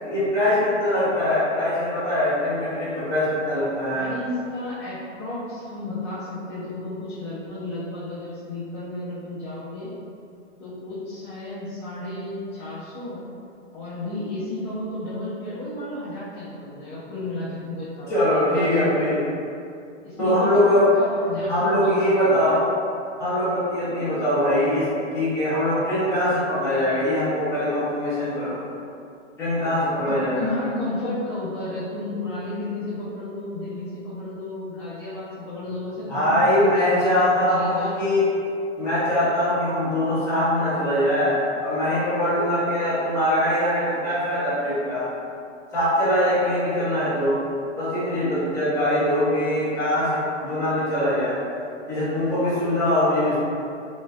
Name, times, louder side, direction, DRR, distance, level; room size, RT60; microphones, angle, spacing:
voice 1, 0.0-4.1 18.1-19.2 20.2-20.9 21.5-22.6 23.2-28.6 29.4-30.5 36.1-38.3 38.8-45.1 45.7-47.4 47.8-51.3 51.9-53.4, left 1 dB, 5° left, -14 dB, 0.9 m, -22 dB
voice 2, 3.8-9.9 10.6-13.2 13.7-19.1 20.0-20.6 20.9-22.6 29.9-37.2 37.5-37.9, left 2 dB, 25° left, -12 dB, 0.5 m, -32 dB
3.1 x 3.1 x 2.3 m, 2.5 s
hypercardioid pair, 160°, 38 cm